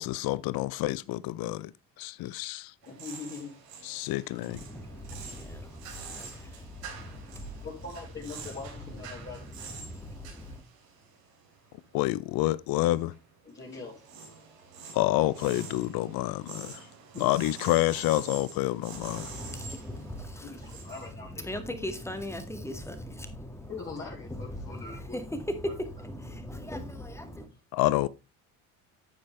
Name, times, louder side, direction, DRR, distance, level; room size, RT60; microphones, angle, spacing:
voice 1, 0.0-1.7 2.0-2.7 3.8-4.6 11.9-13.1 14.9-16.8 17.2-19.3 27.7-28.1, left 17 dB, 60° left, 0.6 m, -28 dB
voice 2, 2.8-4.2 5.0-5.8 7.6-9.5 10.4-10.5 13.4-14.1 14.6-15.0 17.1-17.2 19.7-19.8 20.4-21.5 23.7-25.2, left 4 dB, 30° left, 3.3 m, -43 dB
sound 1, 2.8-12.4 12.7-21.1, right 5 dB, 90° right, 3.3 m, -46 dB
voice 3, 4.5-7.7 8.8-10.6 18.9-27.5, left 1 dB, 5° left, 1.9 m, -39 dB
9.8 x 6.8 x 3.3 m
supercardioid pair, 85°, 40 cm